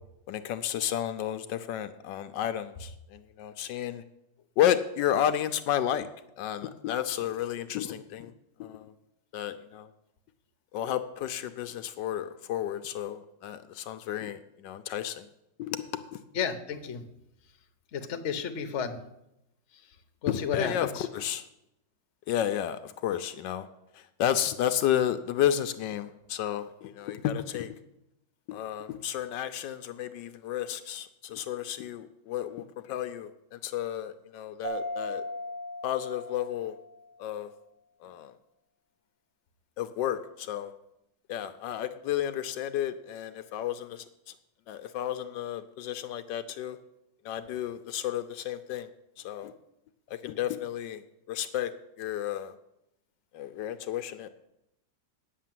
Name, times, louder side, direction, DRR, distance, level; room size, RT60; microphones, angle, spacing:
voice 1, 0.3-4.0 4.6-6.1 6.4-8.3 8.6-8.9 9.3-9.9 10.7-15.2 15.6-15.8 16.1-16.2 20.3-21.4 22.3-23.7 24.2-27.8 28.5-35.2 35.8-36.7 37.2-37.5 38.0-38.3 39.8-40.7 41.3-44.0 44.7-46.8 47.2-48.9 49.2-49.5 50.2-51.0 51.3-51.7 52.0-52.5 53.3-54.3, left 10 dB, 80° left, 9 dB, 1.2 m, -32 dB
voice 2, 16.3-17.0 17.9-19.0 20.2-21.1, left 7 dB, 50° left, 7 dB, 1.0 m, -32 dB
Mallet percussion, 34.6-37.2, equal, 65° right, 5.2 m, -37 dB
9.3 x 6.8 x 7.5 m, 0.85 s
omnidirectional pair, 2.0 m